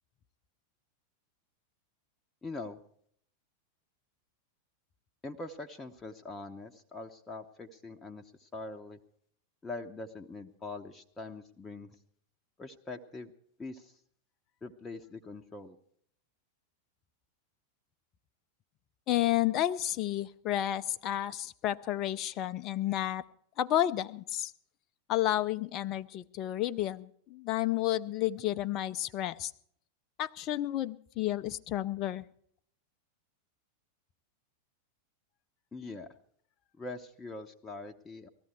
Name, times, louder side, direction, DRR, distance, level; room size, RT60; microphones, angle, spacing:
voice 1, 2.4-2.8 5.2-9.0 9.6-11.9 12.6-13.3 13.6-14.0 14.6-15.8 35.7-36.1 36.8-38.3, left 3 dB, 15° left, 3 dB, 0.9 m, -43 dB
voice 2, 19.1-23.2 23.6-24.5 25.1-29.5 30.2-32.2, left 13 dB, 35° left, 14 dB, 0.6 m, -31 dB
19.5 x 14.0 x 4.7 m, 0.64 s
figure-of-eight pair, 90°, 0 cm